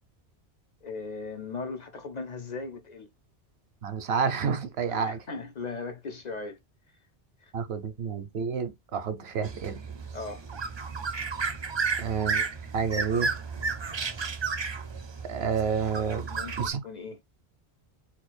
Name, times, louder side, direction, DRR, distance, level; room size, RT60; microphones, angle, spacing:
voice 1, 0.8-3.1 4.9-6.6 7.4-7.5 10.1-10.5 16.3-17.2, left 4 dB, 45° left, 0.7 m, -38 dB
voice 2, 3.8-5.2 7.5-9.8 12.0-13.3 15.3-16.3 16.6-16.8, right 6 dB, 75° right, 1.0 m, -29 dB
sound 1, 9.4-16.7, right 4 dB, 35° right, 0.5 m, -32 dB
4.4 x 2.3 x 4.2 m
omnidirectional pair, 1.1 m